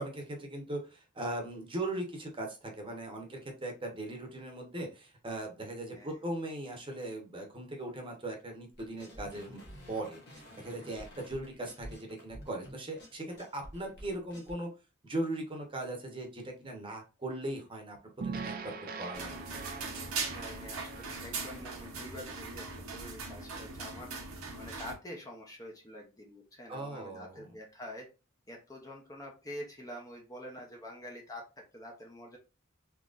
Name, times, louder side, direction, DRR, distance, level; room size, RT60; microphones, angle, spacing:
voice 1, 0.0-9.6 9.9-10.2 10.6-14.7 15.0-19.5 26.7-27.5, right 1 dB, 25° right, 2 dB, 0.9 m, -39 dB
voice 2, 5.9-6.2 20.3-24.1 24.6-28.1 28.5-32.4, left 1 dB, 15° left, 0 dB, 0.6 m, -46 dB
sound 1, 8.8-14.5, equal, 55° left, 1.4 m, -50 dB
sound 2, 18.2-22.5, right 5 dB, 45° right, 0.4 m, -43 dB
sound 3, 19.1-25.0, right 4 dB, 80° right, 0.9 m, -40 dB
3.8 x 2.9 x 2.4 m, 0.30 s
head